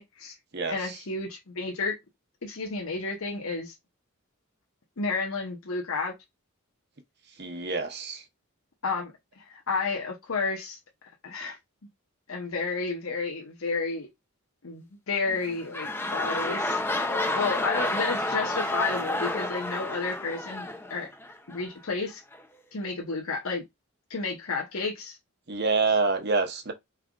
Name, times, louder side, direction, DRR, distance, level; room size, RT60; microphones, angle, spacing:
voice 1, 0.0-0.3 0.7-2.0 2.4-3.7 5.0-6.1 8.8-9.1 9.4-10.8 11.2-11.6 12.3-14.1 14.6-16.8 17.3-21.1 21.5-22.2 22.7-23.6 24.1-25.2, left 4 dB, 75° left, 0.9 m, -31 dB
voice 2, 0.5-1.0 7.4-8.2 25.5-26.7, right 4 dB, 50° right, 0.9 m, -27 dB
sound 1, 15.3-21.6 22.3-22.4, left 1 dB, 10° left, 0.5 m, -30 dB
4.9 x 3.3 x 2.4 m
head